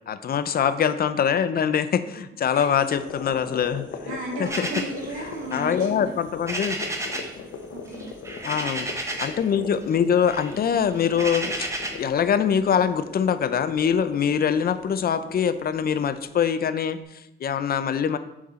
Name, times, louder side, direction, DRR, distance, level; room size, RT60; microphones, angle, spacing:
voice 1, 0.1-3.9 4.4-4.7 5.5-6.8 8.4-11.7 12.0-18.2, left 7 dB, 50° left, 12 dB, 0.6 m, -24 dB
sound 1, 2.7-16.9, left 5 dB, 80° left, 1.0 m, -40 dB
voice 2, 4.1-6.2 7.7-8.5, right 2 dB, 85° right, -1 dB, 2.2 m, -35 dB
sound 2, 4.5-7.4 7.7-9.5 9.8-12.1, right 1 dB, 15° right, 1.1 m, -33 dB
7.3 x 5.7 x 3.7 m, 0.86 s
cardioid pair, 90°, 20 cm